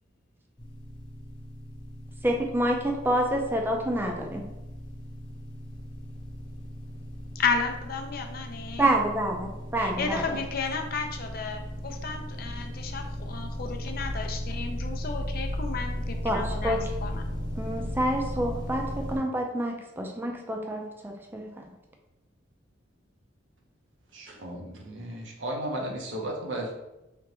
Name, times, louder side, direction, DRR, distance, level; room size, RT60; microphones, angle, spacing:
sound 1, 0.6-19.2, equal, 20° left, 0.8 m, -36 dB
voice 1, 2.2-4.5 8.8-10.4 16.2-16.9 17.6-21.6, right 1 dB, 10° right, 1 dB, 0.5 m, -28 dB
voice 2, 7.3-8.9 9.8-17.3, left 5 dB, 50° left, 4 dB, 0.5 m, -33 dB
voice 3, 24.1-26.7, right 1 dB, 75° right, 0 dB, 0.8 m, -34 dB
3.8 x 3.4 x 3.0 m, 0.96 s
head